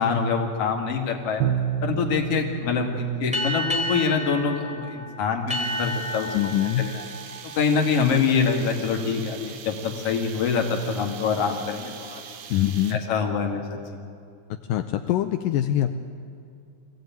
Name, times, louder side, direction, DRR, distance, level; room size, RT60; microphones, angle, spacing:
voice 1, 0.0-1.5 1.8-6.3 6.8-7.0 7.6-12.2 12.9-14.0, left 5 dB, 50° left, 2 dB, 2.8 m, -25 dB
Bowed string instrument, 1.4-4.2, right 8 dB, 85° right, 2.5 m, -30 dB
sound 1, 3.3-8.4, equal, ahead, 2.5 m, -32 dB
sound 2, 5.5-13.2, right 8 dB, 65° right, 2.2 m, -42 dB
voice 2, 6.3-6.9 12.5-13.0 14.5-15.9, left 12 dB, 80° left, 7 dB, 2.3 m, -24 dB
23.5 x 16.0 x 9.2 m, 2.4 s
omnidirectional pair, 4.0 m